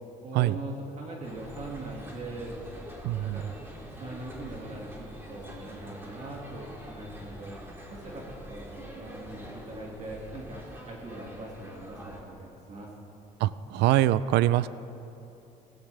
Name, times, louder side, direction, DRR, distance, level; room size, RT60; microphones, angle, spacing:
voice 1, 0.2-2.6 3.2-3.5 3.9-7.6 7.9-10.6 10.9-12.9, right 2 dB, 40° right, -3 dB, 2.0 m, -41 dB
sound 1, 1.2-12.2, equal, 15° right, 2.6 m, -45 dB
voice 2, 3.0-3.5 13.4-14.7, right 14 dB, 80° right, 16 dB, 0.4 m, -24 dB
16.5 x 15.0 x 3.3 m, 2.8 s
cardioid pair, 110°, 17 cm